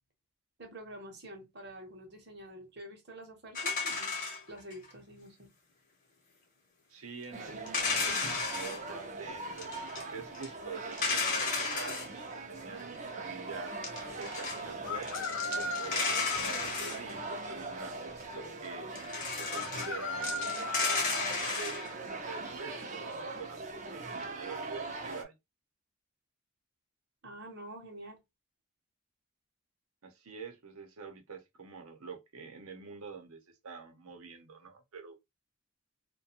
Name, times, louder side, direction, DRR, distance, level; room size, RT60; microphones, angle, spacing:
voice 1, 0.6-4.1 4.5-5.5 27.2-28.2, right 1 dB, 50° right, 0.8 m, -47 dB
sound 1, 3.5-4.9 7.7-8.8 9.6-10.0 10.3-10.5 10.9-12.1 13.7-14.6 15.0-17.5 19.0-19.9 20.2-21.9, left 4 dB, 35° left, 0.8 m, -33 dB
voice 2, 6.9-12.2 12.5-12.9 13.1-13.8 14.2-15.1 15.6-18.9 19.4-21.1 21.6-25.4 30.0-35.2, right 5 dB, 85° right, 0.7 m, -46 dB
sound 2, 7.3-25.2, right 3 dB, 35° right, 0.4 m, -41 dB
sound 3, 11.3-11.4 14.8-16.6 19.5-21.4, left 3 dB, 60° left, 0.4 m, -37 dB
2.4 x 2.2 x 2.7 m
head